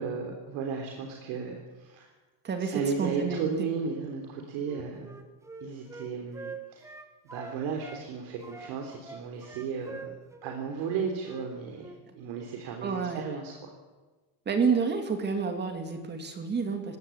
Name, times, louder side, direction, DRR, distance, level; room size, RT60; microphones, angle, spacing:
voice 1, 0.0-2.1 2.6-5.2 5.6-6.9 7.3-10.1 10.4-13.7, right 5 dB, 70° right, 2 dB, 3.6 m, -34 dB
voice 2, 2.4-3.7 12.8-13.2 14.5-17.0, right 5 dB, 25° right, 6 dB, 2.5 m, -29 dB
Wind instrument woodwind instrument, 4.6-8.1 8.4-11.5 11.8-12.0, right 3 dB, 5° right, 1.1 m, -45 dB
20.0 x 17.5 x 8.7 m, 1.3 s
cardioid pair, 175°, 43 cm